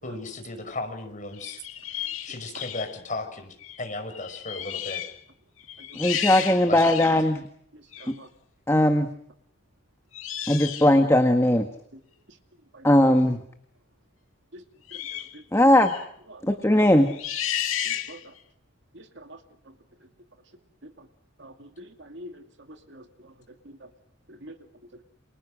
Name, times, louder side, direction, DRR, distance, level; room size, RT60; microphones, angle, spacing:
voice 1, 0.0-5.0 6.7-6.8, left 2 dB, 40° left, 5.6 m, -36 dB
sound 1, 1.3-2.9 3.6-3.8 4.1-5.2 5.6-7.2 7.9-8.1 10.1-11.0 14.9-15.3 15.8-16.0 17.1-18.4, left 10 dB, 85° left, 2.1 m, -33 dB
voice 2, 6.0-7.4 8.7-9.1 10.5-11.6 12.8-13.4 15.5-15.9 16.5-17.1, left 1 dB, 15° left, 1.7 m, -19 dB
voice 3, 17.9-18.2 19.0-19.1 19.3-19.4 21.4-22.3 22.9-23.0 24.3-24.5, equal, 60° right, 2.4 m, -44 dB
29.0 x 28.0 x 6.4 m
head